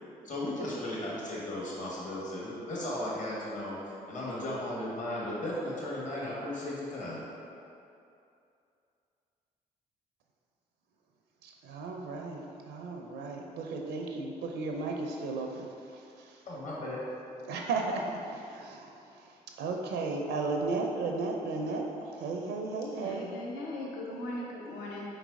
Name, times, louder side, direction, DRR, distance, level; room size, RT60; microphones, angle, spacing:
voice 1, 0.2-3.8 4.1-7.2 16.5-17.0, left 1 dB, 40° left, -6 dB, 1.3 m, -36 dB
voice 2, 11.4-16.4 17.5-23.3, right 3 dB, 65° right, 2 dB, 0.4 m, -35 dB
voice 3, 22.9-25.2, left 1 dB, 70° left, -3 dB, 0.7 m, -39 dB
4.5 x 3.9 x 2.5 m, 2.6 s
hypercardioid pair, 40°, 19 cm